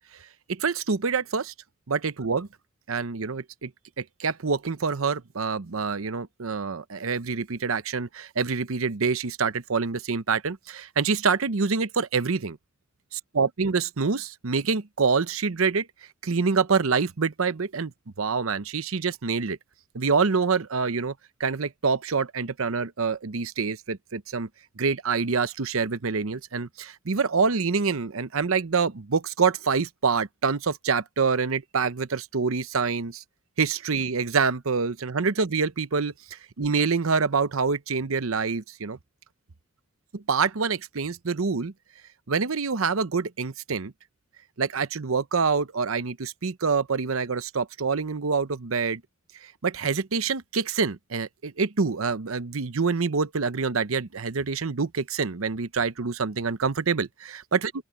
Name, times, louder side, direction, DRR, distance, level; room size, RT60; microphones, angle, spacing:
voice 1, 0.5-1.5 1.9-2.5 2.9-3.7 4.0-12.6 13.1-15.9 16.2-17.9 18.2-19.6 19.9-21.1 21.4-24.5 24.8-33.2 33.6-39.0 40.3-41.7 42.3-43.9 44.6-49.0 49.6-57.7, right 5 dB, 90° right, 0.8 m, -26 dB
open air
head